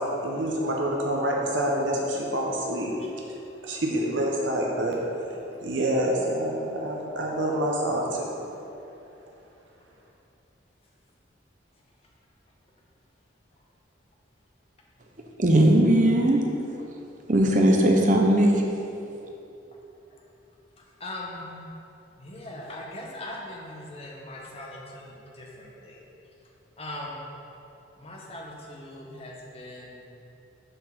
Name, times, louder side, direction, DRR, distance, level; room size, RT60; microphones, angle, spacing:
voice 1, 0.2-2.9 3.6-5.0 5.6-8.3, right 1 dB, 75° right, -2 dB, 0.9 m, -27 dB
voice 2, 15.4-16.4 16.7-16.8 17.3-18.6, right 1 dB, 40° right, 2 dB, 0.7 m, -19 dB
voice 3, 21.0-21.7 22.2-26.0 26.8-27.2 28.0-30.0, left 1 dB, 30° left, -3 dB, 1.0 m, -40 dB
6.5 x 4.4 x 5.9 m, 2.9 s
head